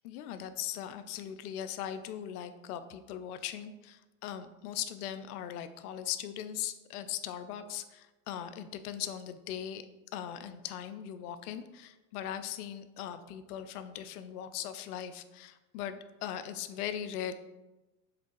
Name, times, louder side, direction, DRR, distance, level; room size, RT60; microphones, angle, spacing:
voice 1, 0.0-9.9 10.1-17.3, left 10 dB, 70° left, 11 dB, 0.6 m, -39 dB
7.4 x 3.3 x 4.6 m, 1.0 s
hypercardioid pair, 110°, 48 cm